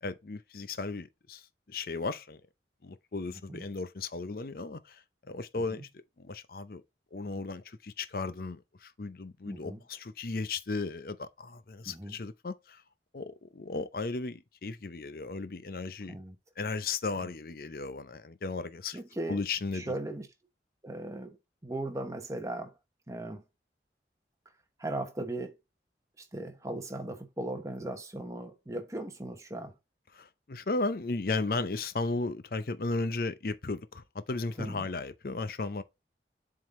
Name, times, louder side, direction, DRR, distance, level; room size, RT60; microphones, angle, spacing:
voice 1, 0.0-2.4 2.8-5.9 6.2-6.8 7.1-12.8 13.1-16.1 16.6-19.0 19.3-19.9 30.2-35.8, left 3 dB, 55° left, 0.6 m, -35 dB
voice 2, 3.3-3.7 5.7-5.8 9.5-9.8 11.9-12.2 16.1-16.4 17.2-17.3 18.9-19.4 19.7-20.3 20.8-21.4 21.6-22.7 23.1-23.4 24.8-25.6 26.2-29.8 34.6-34.9, right 1 dB, 15° right, 1.0 m, -38 dB
7.6 x 3.8 x 3.7 m
head